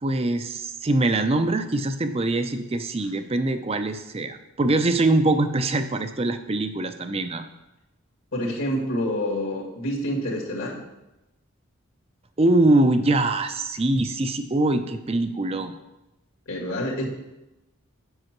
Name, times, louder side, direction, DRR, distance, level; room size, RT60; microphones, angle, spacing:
voice 1, 0.0-7.4 12.4-15.7, right 2 dB, 25° right, 9 dB, 0.5 m, -23 dB
voice 2, 8.3-10.8 16.5-17.1, equal, 70° left, -2 dB, 2.1 m, -27 dB
8.0 x 5.6 x 6.0 m, 0.98 s
head